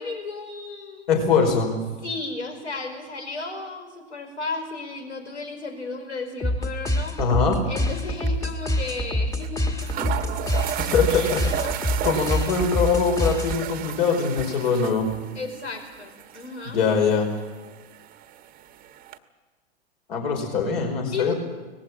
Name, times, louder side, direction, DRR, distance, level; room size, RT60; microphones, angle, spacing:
voice 1, 0.0-1.1 2.0-7.1 7.7-9.6 10.0-10.1 11.1-11.3 11.6-11.9 15.3-16.8 21.1-21.3, left 3 dB, 80° left, 5 dB, 4.9 m, -34 dB
voice 2, 1.1-1.7 7.2-7.6 10.8-11.4 12.0-15.1 16.7-17.3 20.1-21.3, left 5 dB, 60° left, 4 dB, 5.2 m, -22 dB
sound 1, 6.4-13.9, left 1 dB, 10° left, 1.6 m, -26 dB
sound 2, 7.8-8.0 8.3-8.4 9.4-9.5 9.8-19.2, right 11 dB, 25° right, 1.1 m, -34 dB
19.0 x 15.5 x 8.8 m, 1.3 s
hypercardioid pair, 105°, 33 cm